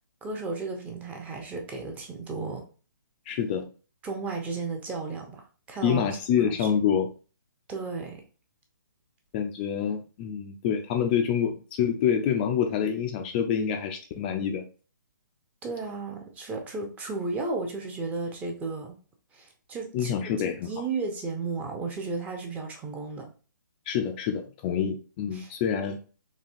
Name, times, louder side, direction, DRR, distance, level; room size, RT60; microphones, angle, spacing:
voice 1, 0.2-2.7 4.0-6.7 7.7-8.2 15.6-19.0 19.3-20.2 20.4-23.3 25.3-25.5, right 3 dB, 15° right, 0.7 m, -34 dB
voice 2, 3.3-3.7 5.8-7.1 9.3-14.6 19.9-20.7 23.9-26.0, left 8 dB, 25° left, 0.4 m, -27 dB
4.1 x 2.8 x 2.6 m
hypercardioid pair, 140°, 11 cm